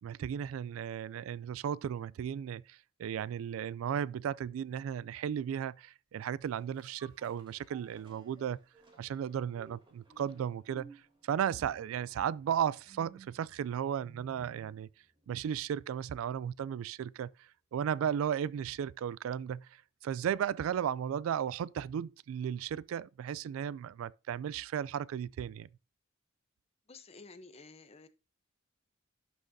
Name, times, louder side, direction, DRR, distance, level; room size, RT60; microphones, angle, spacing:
voice 1, 0.0-8.6 9.0-14.9 15.3-25.7, right 8 dB, 90° right, 0.3 m, -35 dB
sound 1, 6.2-14.8 15.2-15.3, right 3 dB, 25° right, 1.9 m, -58 dB
voice 2, 26.9-28.1, left 3 dB, 30° left, 0.7 m, -52 dB
11.5 x 6.1 x 2.6 m
head